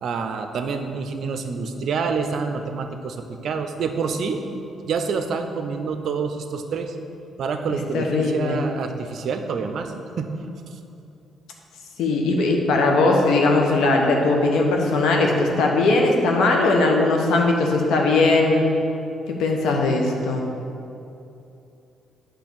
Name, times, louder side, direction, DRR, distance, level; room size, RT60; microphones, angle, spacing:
voice 1, 0.0-3.2 3.4-4.4 4.8-7.0 7.4-10.3 10.7-10.8, right 5 dB, 65° right, 6 dB, 0.5 m, -27 dB
voice 2, 7.9-8.6 12.0-18.6 19.4-20.4, left 2 dB, 80° left, 1 dB, 1.0 m, -19 dB
8.3 x 3.3 x 6.1 m, 2.7 s
cardioid pair, 90°, 0 cm